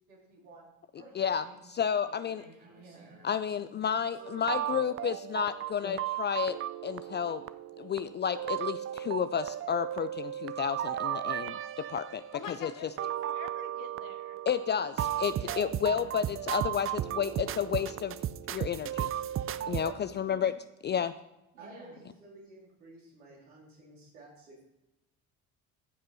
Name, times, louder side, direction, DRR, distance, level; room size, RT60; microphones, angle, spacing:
voice 1, 0.1-1.6 2.0-4.7 15.4-15.5 15.8-16.3 19.6-20.5 21.5-24.6, right 2 dB, 80° right, -3 dB, 3.1 m, -53 dB
voice 2, 1.7-2.4 3.2-6.6 6.8-7.4 7.8-12.2 12.5-12.7 14.5-18.2 18.5-19.1 19.7-20.5 20.8-21.1, left 8 dB, 25° left, 13 dB, 0.4 m, -31 dB
sound 1, 4.2-19.9, right 11 dB, 30° right, 0.5 m, -35 dB
voice 3, 12.3-14.4, left 8 dB, 45° left, 8 dB, 1.3 m, -45 dB
15.0 x 5.3 x 4.0 m, 0.92 s
hypercardioid pair, 60°, 42 cm